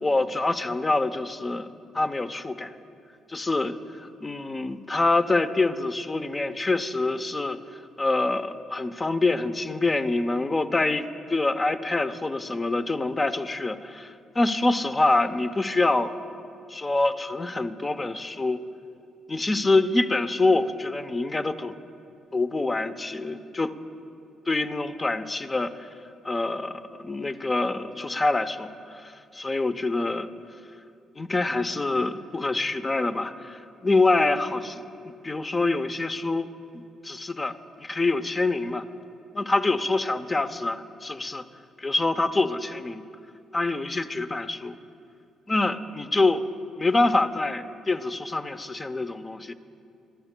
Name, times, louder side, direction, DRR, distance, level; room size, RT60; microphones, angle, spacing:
voice 1, 0.0-1.7 1.9-2.7 3.3-3.8 4.2-7.6 8.0-16.1 16.7-18.6 19.3-21.7 22.3-23.7 24.5-25.9 26.2-28.7 29.0-30.3 31.2-36.5 37.0-38.8 39.3-41.4 41.8-43.0 43.5-44.8 45.5-46.5 46.8-49.5, left 2 dB, 25° left, 10 dB, 0.6 m, -25 dB
26.5 x 13.5 x 2.2 m, 2.5 s
cardioid pair, 90°, 0 cm